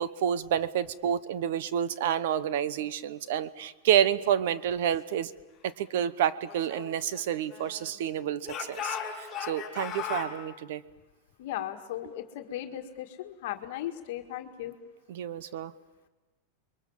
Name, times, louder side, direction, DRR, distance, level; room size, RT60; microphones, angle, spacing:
voice 1, 0.0-5.3 5.6-10.8 15.1-15.7, right 9 dB, 65° right, 17 dB, 1.0 m, -29 dB
Speech / Shout, 6.4-8.0 8.4-10.3, left 8 dB, 15° left, 5.1 m, -37 dB
voice 2, 11.4-14.8, left 12 dB, 60° left, 5 dB, 1.8 m, -37 dB
29.5 x 22.5 x 7.3 m, 1.1 s
supercardioid pair, 160°, 0 cm